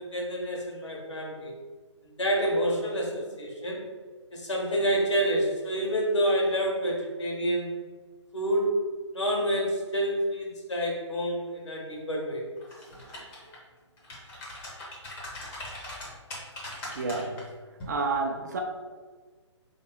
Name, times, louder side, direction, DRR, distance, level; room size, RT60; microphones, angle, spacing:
voice 1, 0.0-1.5 2.0-3.8 4.3-7.7 8.3-8.7 9.1-12.4, equal, 70° left, 1.2 m, -28 dB
sound 1, 12.6-13.6 14.0-17.4 17.8-18.0, left 1 dB, 15° left, 0.6 m, -41 dB
voice 2, 16.6-17.5 17.8-18.6, right 3 dB, 35° right, 0.4 m, -31 dB
3.2 x 2.9 x 4.4 m
figure-of-eight pair, 135°, 16 cm